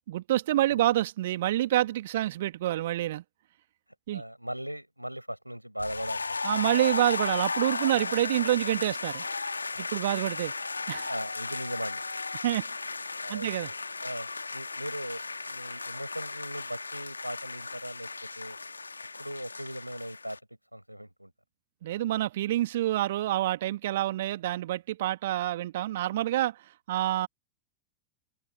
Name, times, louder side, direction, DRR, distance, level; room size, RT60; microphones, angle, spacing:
voice 1, 0.0-3.2 4.1-4.2 6.4-9.2 9.8-10.5 10.9-11.1 12.4-12.7 13.3-13.7 21.8-26.6 26.9-27.3, right 14 dB, 55° right, 2.3 m, -27 dB
voice 2, 4.1-6.7 9.7-9.9 11.0-12.0 13.2-18.1 18.4-18.6 19.2-20.4 20.7-21.3, equal, 90° right, 5.1 m, -39 dB
sound 1, 5.8-20.4, left 3 dB, 80° left, 2.0 m, -35 dB
open air
figure-of-eight pair, 90°, 0 cm